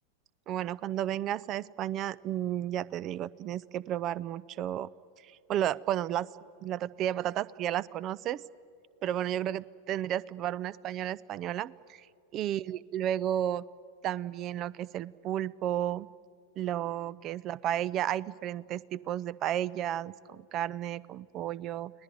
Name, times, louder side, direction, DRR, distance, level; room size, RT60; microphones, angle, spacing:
voice 1, 0.5-4.9 5.2-6.3 6.6-8.4 9.0-12.1 12.3-13.6 14.0-16.1 16.6-21.9, right 11 dB, 35° right, 22 dB, 0.6 m, -32 dB
30.0 x 19.5 x 9.3 m, 2.4 s
figure-of-eight pair, 90°, 0 cm